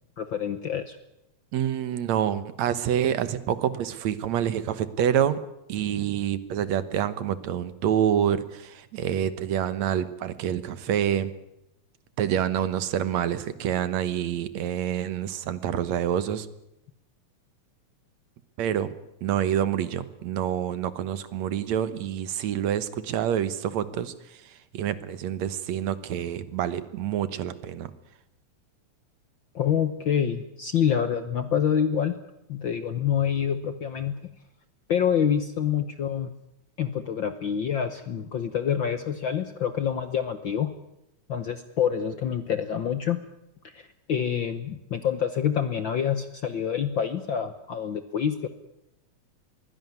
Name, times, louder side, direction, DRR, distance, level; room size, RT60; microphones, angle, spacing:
voice 1, 0.2-1.0 29.5-32.2 32.5-34.2 34.9-36.3 36.8-40.7 41.3-43.2 43.7-48.5, left 8 dB, 60° left, 11 dB, 1.3 m, -27 dB
voice 2, 1.5-5.4 5.7-11.3 12.2-16.5 18.6-18.9 19.2-27.9, right 10 dB, 70° right, 14 dB, 2.3 m, -27 dB
23.0 x 16.5 x 9.6 m, 0.86 s
omnidirectional pair, 3.4 m